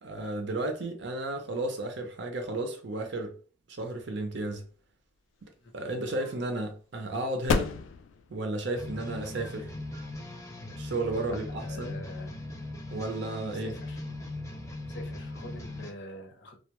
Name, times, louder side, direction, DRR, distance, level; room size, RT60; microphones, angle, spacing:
voice 1, 0.0-3.4 3.7-4.6 5.4-7.7 8.3-9.7 10.8-12.0 12.9-13.8, right 2 dB, 65° right, 0.5 m, -33 dB
sound 1, 4.8-12.2, left 4 dB, 90° left, 0.3 m, -37 dB
sound 2, 6.0-6.4 8.4-9.0 9.4-10.1, right 2 dB, 10° right, 0.7 m, -54 dB
sound 3, 8.7-15.9, left 2 dB, 15° left, 0.4 m, -39 dB
voice 2, 11.6-12.3 13.9-14.0 14.9-16.6, left 1 dB, 60° left, 0.7 m, -45 dB
2.3 x 2.1 x 2.9 m
head